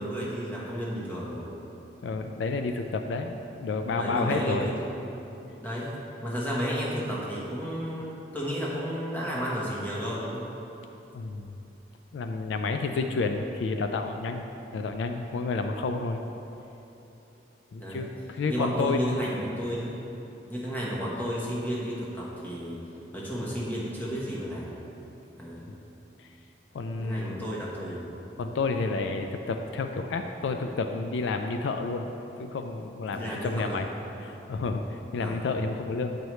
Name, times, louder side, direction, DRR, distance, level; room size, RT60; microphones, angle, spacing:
voice 1, 0.0-1.5 4.0-4.7 5.6-5.9 6.2-10.4 13.0-13.1 17.8-18.1 18.5-19.9 20.5-22.8 23.1-24.7 25.4-25.7 27.0-28.1 33.1-33.9 35.2-35.4, equal, 10° left, -6 dB, 1.1 m, -32 dB
voice 2, 2.0-4.7 11.1-11.6 12.1-14.4 14.7-16.2 17.7-19.2 26.2-26.3 26.7-27.5 28.4-32.1 32.4-33.9 34.2-36.2, left 3 dB, 75° left, 6 dB, 0.3 m, -30 dB
9.0 x 4.7 x 3.1 m, 3.0 s
head